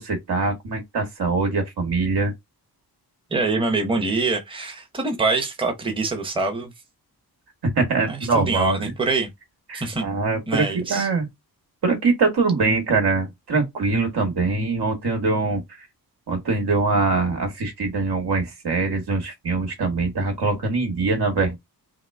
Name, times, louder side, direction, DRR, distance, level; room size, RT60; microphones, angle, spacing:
voice 1, 0.0-2.3 7.6-8.9 9.7-11.3 11.8-15.6 16.3-21.6, right 3 dB, 85° right, 1.9 m, -23 dB
voice 2, 3.3-6.7 8.1-9.3 9.7-10.0 10.5-11.1, right 3 dB, 15° right, 0.8 m, -24 dB
3.8 x 2.9 x 3.5 m
wide cardioid pair, 170°, 38 cm